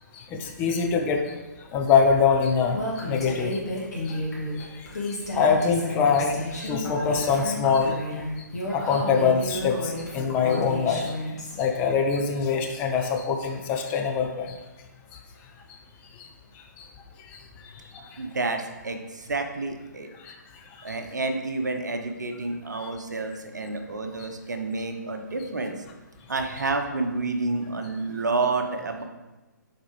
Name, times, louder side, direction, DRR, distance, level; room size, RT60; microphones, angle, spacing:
voice 1, 0.1-1.3 1.7-3.7 4.0-4.2 4.6-8.0 8.7-11.0 11.6-14.6 16.2-16.3 16.8-16.9 17.3-17.4 17.6-17.8 18.1-18.2 20.2-20.3 20.8-21.0 22.7-22.9, left 5 dB, 15° left, 3 dB, 0.4 m, -24 dB
Female speech woman speaking, 2.7-11.6, left 1 dB, 60° left, 1.8 m, -32 dB
voice 2, 18.2-20.1 20.8-25.7 26.3-29.0, right 3 dB, 70° right, 5 dB, 0.8 m, -29 dB
8.2 x 4.1 x 3.1 m, 1.1 s
figure-of-eight pair, 135°, 10 cm